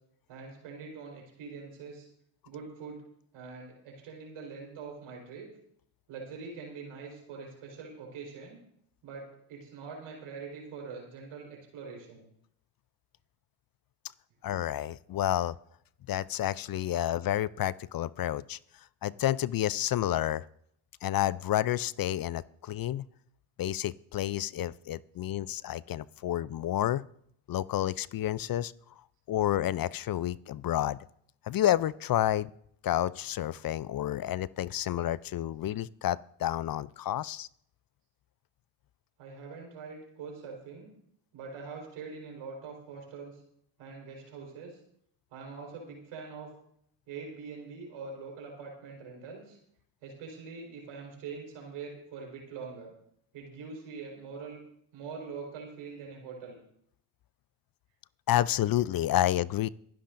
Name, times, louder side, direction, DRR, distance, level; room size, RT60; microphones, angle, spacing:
voice 1, 0.3-2.1 2.4-3.0 3.3-5.5 6.1-8.6 9.0-12.2 39.2-40.9 41.3-43.4 43.8-44.8 45.3-46.5 47.1-49.6 50.0-52.9 53.3-54.6 54.9-56.6, right 5 dB, 80° right, 0 dB, 4.5 m, -43 dB
voice 2, 14.4-15.5 16.1-18.6 19.0-20.5 21.0-23.0 23.6-27.0 27.5-28.7 29.3-31.0 31.4-32.5 32.8-37.5 58.3-59.7, left 12 dB, 50° left, 20 dB, 0.5 m, -30 dB
26.5 x 10.5 x 2.6 m, 0.68 s
hypercardioid pair, 50°, 48 cm